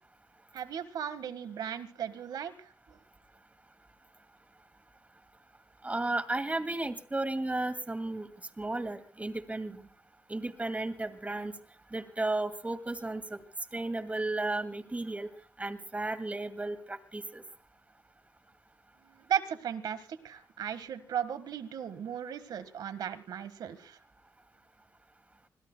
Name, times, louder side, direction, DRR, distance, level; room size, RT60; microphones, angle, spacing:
voice 1, 0.5-3.0 19.0-24.0, right 9 dB, 80° right, 13 dB, 1.6 m, -36 dB
voice 2, 5.8-8.3 8.6-9.9 10.3-11.5 11.9-13.4 13.7-15.3 15.6-17.4, right 2 dB, 20° right, 10 dB, 2.4 m, -34 dB
27.5 x 21.5 x 2.3 m, 0.40 s
cardioid pair, 65°, 7 cm